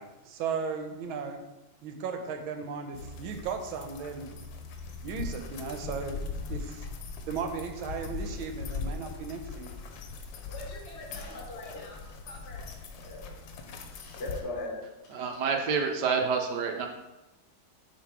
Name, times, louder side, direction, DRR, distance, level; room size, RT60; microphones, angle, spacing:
voice 1, 0.0-1.4 1.8-4.3 5.0-6.2 6.5-6.9 7.3-9.7, right 5 dB, 90° right, 5 dB, 1.5 m, -36 dB
sound 1, 2.9-14.4, left 4 dB, 75° left, 1.4 m, -40 dB
voice 2, 10.5-12.0 12.2-13.2 14.0-14.7, left 2 dB, 40° left, -3 dB, 1.2 m, -40 dB
voice 3, 15.1-16.9, right 5 dB, 70° right, 3 dB, 1.1 m, -28 dB
6.9 x 3.4 x 4.6 m, 1.0 s
omnidirectional pair, 2.2 m